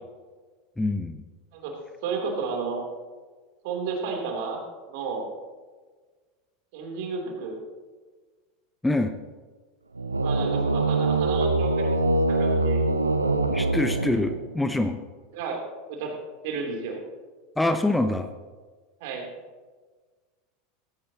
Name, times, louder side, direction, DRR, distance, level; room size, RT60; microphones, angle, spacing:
voice 1, 0.8-1.2 8.8-9.1 13.5-15.0 17.6-18.3, left 2 dB, 5° left, 8 dB, 0.8 m, -25 dB
voice 2, 2.0-2.8 3.6-4.6 4.9-5.3 6.7-7.6 10.2-12.0 12.3-13.1 15.3-15.6 15.9-16.1 16.4-17.0 19.0-19.3, right 5 dB, 55° right, 1 dB, 3.4 m, -32 dB
sound 1, 9.9-14.7, right 2 dB, 85° right, 0.8 m, -24 dB
17.0 x 16.0 x 3.0 m, 1.4 s
figure-of-eight pair, 80°, 0 cm